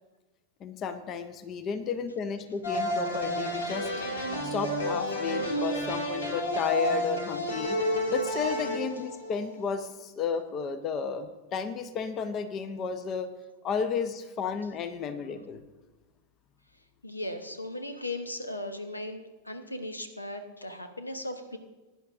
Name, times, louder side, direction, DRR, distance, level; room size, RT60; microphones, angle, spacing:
voice 1, 0.6-3.9 4.4-7.8 8.1-13.3 13.6-15.6, left 6 dB, 30° left, 10 dB, 0.8 m, -33 dB
sound 1, 2.6-9.6, equal, 65° left, 2.2 m, -30 dB
voice 2, 17.0-21.6, left 1 dB, 80° left, 8 dB, 1.0 m, -37 dB
20.5 x 10.5 x 2.6 m, 1.2 s
figure-of-eight pair, 90°, 0 cm